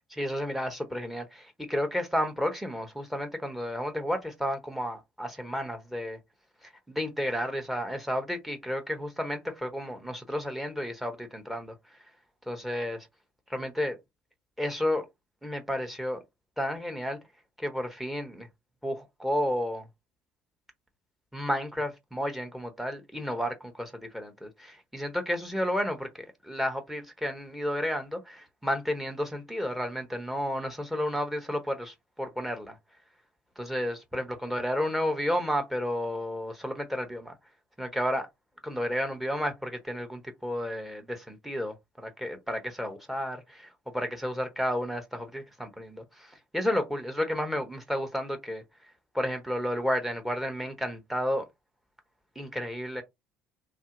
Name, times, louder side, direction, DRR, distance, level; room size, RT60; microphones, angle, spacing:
voice 1, 0.1-6.2 6.6-12.0 12.5-13.1 13.5-14.0 14.6-15.0 15.4-16.2 16.6-17.2 17.6-18.5 18.8-19.9 21.3-32.8 33.6-37.3 37.8-38.3 38.6-48.6 49.1-51.4 52.3-53.0, equal, 5° right, 1.0 m, -32 dB
2.7 x 2.1 x 3.8 m
figure-of-eight pair, 55°, 6 cm